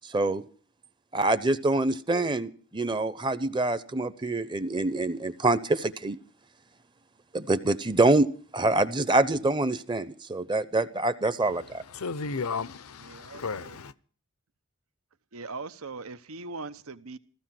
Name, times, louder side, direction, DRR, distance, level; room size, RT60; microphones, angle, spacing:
voice 1, 0.1-0.4 1.1-6.2 7.3-8.3 8.5-11.8, right 2 dB, 20° right, 0.8 m, -25 dB
voice 2, 11.4-13.9, left 4 dB, 85° left, 0.8 m, -35 dB
voice 3, 13.1-13.7 15.3-17.2, right 3 dB, 80° right, 1.0 m, -40 dB
15.0 x 15.0 x 6.0 m
head